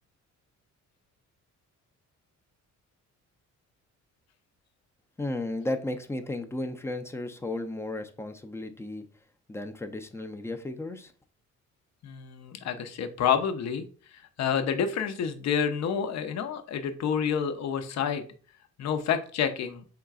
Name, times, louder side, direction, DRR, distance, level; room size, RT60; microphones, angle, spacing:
voice 1, 5.2-9.0 9.5-11.1, left 2 dB, 10° left, 0.5 m, -34 dB
voice 2, 12.0-13.9 14.1-18.2 18.8-19.8, left 7 dB, 60° left, 0.7 m, -29 dB
4.6 x 3.7 x 2.3 m
cardioid pair, 90°, 30 cm